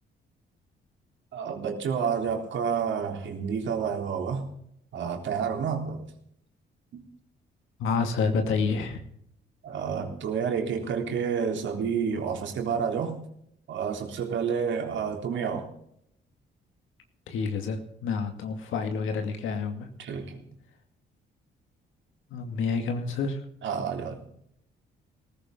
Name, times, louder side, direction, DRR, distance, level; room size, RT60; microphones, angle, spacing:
voice 1, 1.3-4.4 4.9-6.0 6.9-7.0 9.6-13.2 13.7-15.7 20.0-20.4 23.6-24.2, right 6 dB, 70° right, 2 dB, 3.7 m, -29 dB
voice 2, 7.8-9.0 17.3-19.9 22.3-23.4, left 5 dB, 85° left, 5 dB, 2.4 m, -28 dB
18.0 x 15.0 x 4.0 m, 0.70 s
cardioid pair, 90°, 20 cm